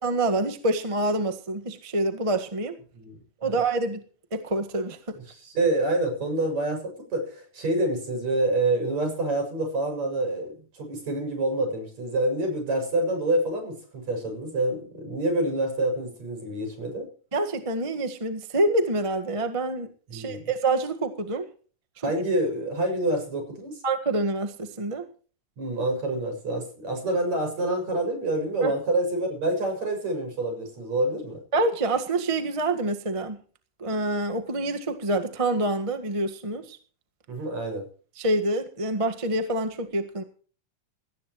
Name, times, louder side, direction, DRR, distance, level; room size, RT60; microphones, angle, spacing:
voice 1, 0.0-2.7 3.4-4.0 4.3-5.2 17.3-21.5 22.0-22.1 23.8-25.0 28.6-28.7 31.5-33.4 33.8-36.8 38.2-40.2, right 2 dB, 35° right, 6 dB, 0.5 m, -26 dB
voice 2, 2.9-3.6 5.4-17.1 20.1-20.4 22.0-23.8 25.6-31.4 37.3-37.9, right 1 dB, 55° right, 4 dB, 8.0 m, -27 dB
19.0 x 18.0 x 3.1 m, 0.41 s
omnidirectional pair, 3.7 m